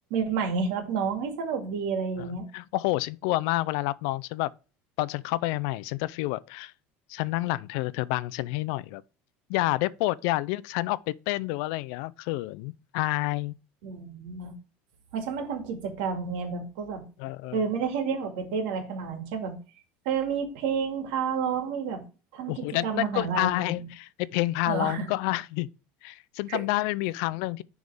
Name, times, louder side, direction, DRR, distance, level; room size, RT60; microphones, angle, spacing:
voice 1, 0.1-2.4 13.8-14.5 15.1-17.0 17.5-19.5 20.1-22.0 22.3-23.7 24.7-25.1 26.5-26.6, right 6 dB, 75° right, 2.0 m, -30 dB
voice 2, 2.5-4.5 5.0-6.7 7.1-9.0 9.5-13.5 17.2-17.6 22.5-25.7 26.0-27.6, left 18 dB, 60° left, 0.3 m, -29 dB
10.5 x 3.6 x 3.4 m
cardioid pair, 170°, 5 cm